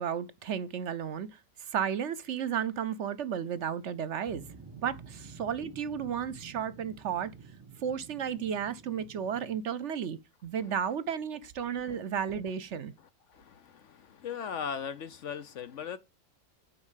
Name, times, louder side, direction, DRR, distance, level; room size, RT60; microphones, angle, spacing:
voice 1, 0.0-4.4 4.8-7.3 7.8-12.9, right 8 dB, 65° right, 0.9 m, -33 dB
sound 1, 4.3-9.6, right 5 dB, 20° right, 1.4 m, -50 dB
voice 2, 13.3-16.0, left 7 dB, 65° left, 1.1 m, -38 dB
9.8 x 4.6 x 7.3 m
omnidirectional pair, 1.4 m